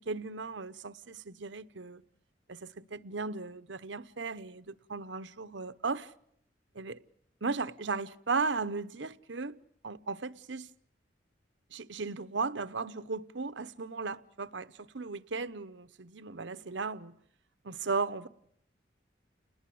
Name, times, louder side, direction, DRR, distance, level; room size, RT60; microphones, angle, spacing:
voice 1, 0.1-2.0 2.5-6.1 6.7-7.0 7.4-9.6 9.8-10.7 11.7-17.1 17.6-18.3, right 4 dB, 80° right, 0.9 m, -36 dB
30.0 x 20.5 x 7.8 m
head